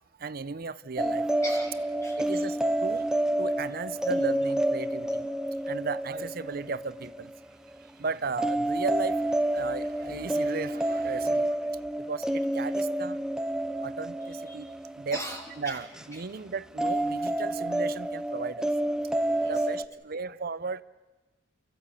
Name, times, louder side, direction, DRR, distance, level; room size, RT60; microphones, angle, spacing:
voice 1, 0.2-1.3 2.2-5.3 5.6-7.3 7.8-11.7 12.0-13.2 13.8-15.2 15.6-18.7 19.4-20.8, right 4 dB, 55° right, 16 dB, 0.6 m, -35 dB
sound 1, 1.0-7.8 8.4-16.0 16.8-19.8, right 1 dB, 5° right, 0.6 m, -29 dB
voice 2, 1.4-2.5 14.5-14.7 15.1-15.8 16.1-16.2 19.4-19.5, equal, 15° left, 0 dB, 3.0 m, -40 dB
29.0 x 15.0 x 8.4 m, 1.2 s
head